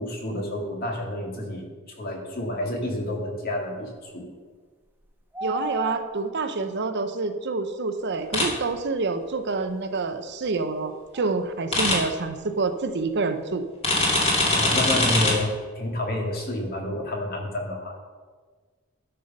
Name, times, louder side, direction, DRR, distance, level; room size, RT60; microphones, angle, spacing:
voice 1, 0.0-1.7 2.0-4.3 14.4-18.0, left 1 dB, 45° left, 0 dB, 2.1 m, -29 dB
sound 1, 4.9-6.5 8.9-9.0 11.1-11.5 11.9-12.0 12.2-13.2, equal, 10° right, 1.2 m, -35 dB
voice 2, 5.4-13.6, right 3 dB, 55° right, 8 dB, 0.7 m, -27 dB
sound 2, 8.3-8.5 11.7-12.0 13.8-15.3, left 2 dB, 30° left, 2.4 m, -21 dB
12.5 x 5.6 x 5.3 m, 1.5 s
head